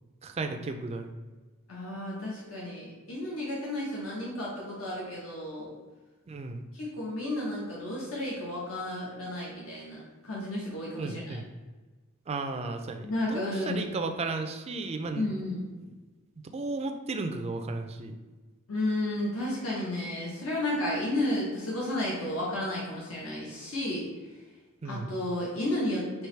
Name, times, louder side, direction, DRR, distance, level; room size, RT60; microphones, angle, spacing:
voice 1, 0.2-1.1 6.3-6.6 11.0-11.5 12.3-15.3 15.9-16.0 16.5-18.2 24.8-25.2, right 3 dB, 30° right, 6 dB, 0.3 m, -34 dB
voice 2, 1.7-5.7 6.7-11.4 13.0-14.0 15.1-15.7 18.7-24.1 24.8-26.3, left 1 dB, 75° left, -5 dB, 1.1 m, -32 dB
4.7 x 3.0 x 3.2 m, 1.3 s
head